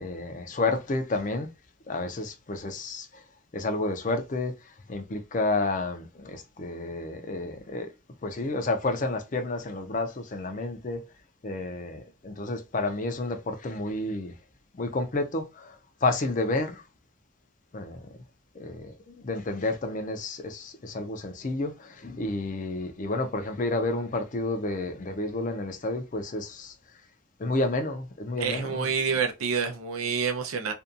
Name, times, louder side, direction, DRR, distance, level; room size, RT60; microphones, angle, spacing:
voice 1, 0.0-1.5 1.9-3.2 3.5-7.9 8.2-11.0 11.4-14.3 14.7-16.8 17.7-18.1 18.5-26.7 27.4-28.9, left 2 dB, 35° left, 0.4 m, -30 dB
voice 2, 28.4-30.7, right 6 dB, 90° right, 0.6 m, -28 dB
2.6 x 2.2 x 2.5 m
head